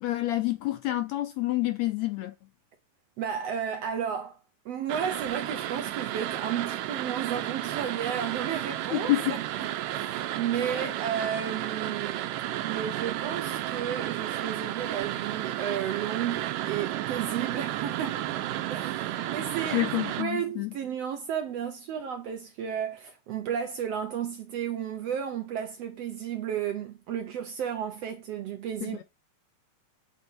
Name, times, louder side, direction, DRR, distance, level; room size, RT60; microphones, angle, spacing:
voice 1, 0.0-2.3 8.9-9.3 10.7-10.9 19.2-19.3 19.7-20.7 28.8-29.0, left 16 dB, 80° left, 1.7 m, -28 dB
voice 2, 3.2-4.4 4.6-12.3 12.6-18.2 18.7-19.9 20.2-29.0, right 8 dB, 70° right, 1.6 m, -33 dB
sound 1, 4.9-20.2, right 13 dB, 90° right, 2.3 m, -32 dB
8.0 x 4.2 x 5.4 m
omnidirectional pair, 3.7 m